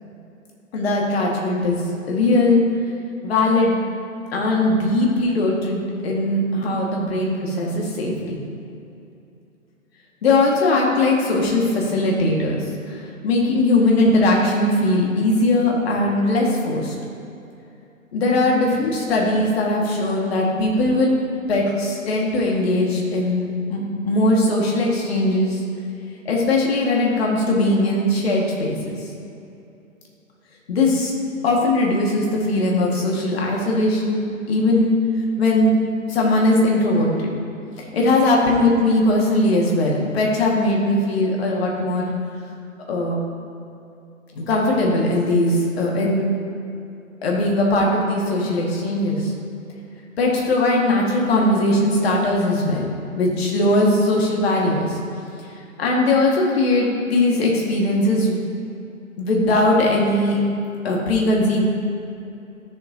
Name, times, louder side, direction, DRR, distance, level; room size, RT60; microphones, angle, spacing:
voice 1, 0.7-1.8 2.1-2.6 3.2-3.8 4.3-8.4 10.2-12.6 12.9-16.9 18.1-21.1 21.5-25.6 26.3-29.0 30.7-31.1 31.4-34.9 35.4-35.7 36.1-37.3 37.9-42.1 42.9-43.2 44.3-46.2 47.2-49.3 50.2-52.8 53.2-55.0 55.8-58.4 59.2-60.4 60.8-61.7, left 2 dB, 50° left, -2 dB, 2.1 m, -19 dB
14.0 x 6.9 x 2.9 m, 2.7 s
figure-of-eight pair, 125°, 41 cm